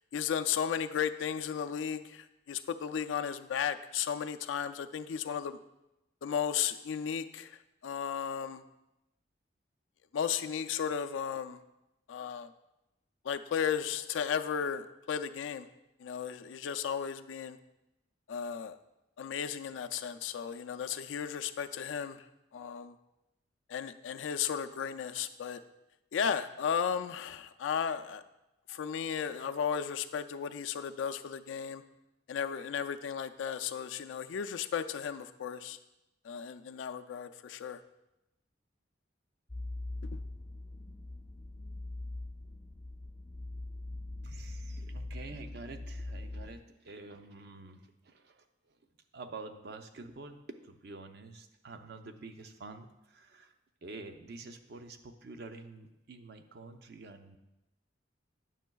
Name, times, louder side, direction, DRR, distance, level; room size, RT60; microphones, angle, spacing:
voice 1, 0.0-5.6 6.2-7.6 7.8-8.6 10.1-11.6 12.1-12.5 13.2-15.7 16.0-17.6 18.3-18.8 19.2-22.2 22.5-22.9 23.7-25.6 26.1-28.2 28.7-31.8 32.3-35.8 36.2-37.8, left 7 dB, 90° left, 8 dB, 0.4 m, -34 dB
sound 1, 39.5-46.6, left 2 dB, 15° left, 0.5 m, -42 dB
voice 2, 44.2-48.8 49.1-50.4 50.6-53.5 53.8-57.4, right 3 dB, 60° right, 7 dB, 0.5 m, -48 dB
9.1 x 6.2 x 2.3 m, 0.92 s
head